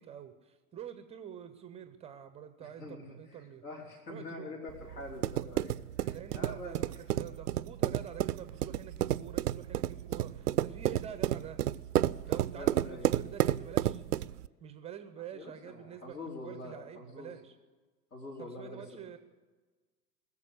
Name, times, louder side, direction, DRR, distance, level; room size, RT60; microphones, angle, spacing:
voice 1, 0.0-3.6 4.1-4.6 6.1-11.6 12.3-14.0 14.6-17.5 18.4-19.2, right 9 dB, 15° right, 10 dB, 0.6 m, -46 dB
voice 2, 2.6-3.0 3.3-6.8 10.8-11.1 12.5-13.2 15.3-17.3 18.1-19.0, left 2 dB, 65° left, -4 dB, 4.2 m, -45 dB
sound 1, 4.7-14.5, right 12 dB, 65° right, 0.6 m, -31 dB
20.5 x 7.2 x 9.6 m, 1.3 s
figure-of-eight pair, 100°, 50 cm